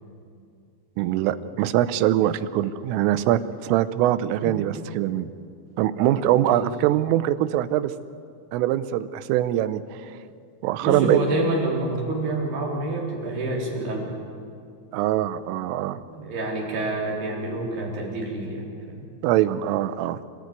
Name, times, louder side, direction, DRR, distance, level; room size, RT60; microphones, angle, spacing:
voice 1, 1.0-5.3 5.8-7.9 8.5-10.1 10.6-11.2 14.9-16.0 19.2-20.2, right 13 dB, 90° right, 13 dB, 3.3 m, -23 dB
voice 2, 6.0-6.7 10.8-14.1 16.0-19.1, right 2 dB, 55° right, -2 dB, 5.9 m, -28 dB
27.5 x 14.5 x 9.5 m, 2.4 s
omnidirectional pair, 5.7 m